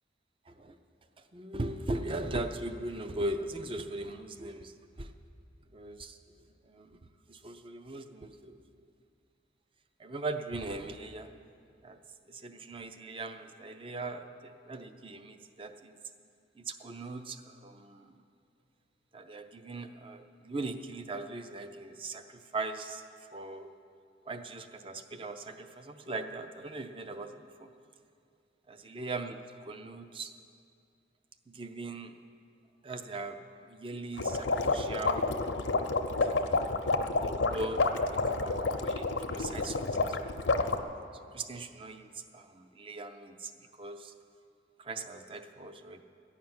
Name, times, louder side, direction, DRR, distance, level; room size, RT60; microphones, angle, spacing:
voice 1, 1.2-5.1 5.7-6.2 6.7-7.0 7.3-8.6 10.0-11.3 11.8-12.0 12.3-15.9 16.6-18.1 19.1-23.0 23.3-23.7 24.3-27.7 28.7-30.3 31.5-32.1 32.8-33.4 33.7-35.3 36.2-36.7 37.2-40.2 40.5-40.7 41.3-43.5 43.8-44.1 44.8-46.0, right 2 dB, 30° right, 8 dB, 0.5 m, -40 dB
sound 1, 34.2-40.8, left 3 dB, 80° left, 0.7 m, -29 dB
14.0 x 5.9 x 9.5 m, 2.4 s
head